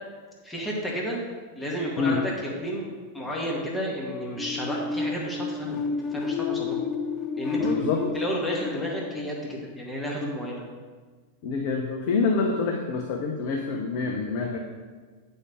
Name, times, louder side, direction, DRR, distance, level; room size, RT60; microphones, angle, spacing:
voice 1, 0.4-1.2 1.6-6.8 7.3-10.6, equal, 10° left, -3 dB, 1.8 m, -31 dB
sound 1, 4.4-10.0, left 5 dB, 25° left, 0.5 m, -31 dB
voice 2, 7.6-8.0 11.4-14.6, left 4 dB, 45° left, 1 dB, 0.9 m, -26 dB
8.3 x 5.4 x 6.0 m, 1.5 s
figure-of-eight pair, 90°, 0 cm